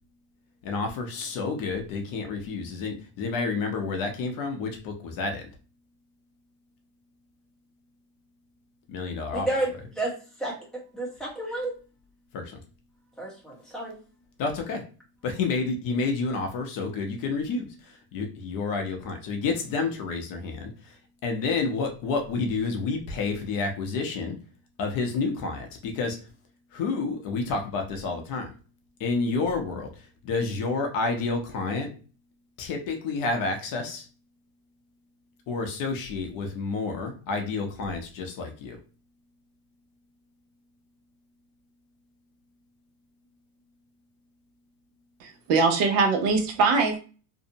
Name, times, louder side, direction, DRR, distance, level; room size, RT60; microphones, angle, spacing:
voice 1, 0.6-5.5 8.9-9.5 12.3-12.6 14.4-14.8 15.2-21.0 21.2-24.4 24.8-26.2 26.7-28.5 29.0-31.9 32.6-34.1 35.5-38.8, left 4 dB, 45° left, 4 dB, 0.6 m, -29 dB
voice 2, 9.3-9.7 9.9-10.1 10.4-10.6 10.9-11.7 13.2-13.9, right 2 dB, ahead, -4 dB, 0.7 m, -30 dB
voice 3, 45.2-47.0, right 4 dB, 60° right, 4 dB, 0.7 m, -22 dB
2.6 x 2.0 x 2.7 m, 0.36 s
cardioid pair, 140°, 47 cm